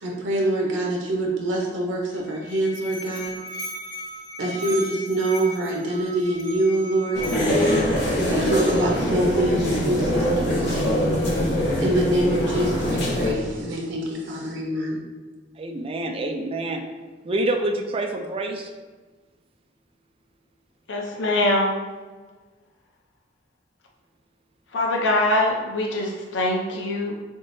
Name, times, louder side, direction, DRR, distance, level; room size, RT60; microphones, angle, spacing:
voice 1, 0.0-3.4 4.4-7.2 8.1-10.9 11.4-15.0, right 1 dB, 85° right, -1 dB, 0.7 m, -25 dB
Musical instrument, 2.1-9.1, right 1 dB, 45° right, 0.8 m, -37 dB
sound 1, 7.1-13.3, left 1 dB, 65° left, 0.9 m, -23 dB
voice 2, 15.6-16.8 17.2-18.7, right 1 dB, 30° right, 4 dB, 0.3 m, -27 dB
voice 3, 20.9-21.7 24.7-27.1, left 1 dB, 80° left, 0 dB, 0.6 m, -23 dB
3.7 x 3.7 x 2.6 m, 1.3 s
head